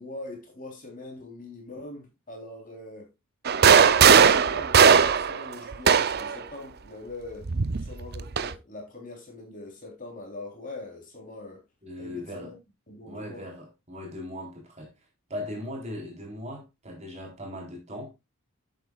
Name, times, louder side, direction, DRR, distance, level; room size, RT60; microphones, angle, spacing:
voice 1, 0.0-3.1 3.8-11.6 12.0-12.6 12.9-13.5, left 2 dB, 35° left, 3.6 m, -42 dB
sound 1, 3.5-6.4 7.5-8.5, right 6 dB, 45° right, 0.6 m, -18 dB
voice 2, 11.8-12.5 13.1-18.1, left 1 dB, 30° right, 3.7 m, -39 dB
11.5 x 7.8 x 2.4 m
head